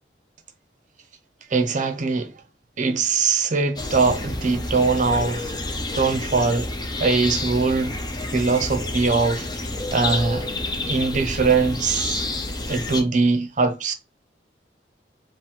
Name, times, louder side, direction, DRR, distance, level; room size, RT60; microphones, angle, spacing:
voice 1, 1.5-2.3 2.8-5.4 6.0-6.7 7.0-7.9 8.3-9.4 9.9-10.5 10.9-12.2 12.7-13.9, right 4 dB, 45° right, 0.7 m, -21 dB
sound 1, 3.8-13.0, left 2 dB, 25° left, 0.7 m, -29 dB
5.0 x 2.2 x 3.7 m
head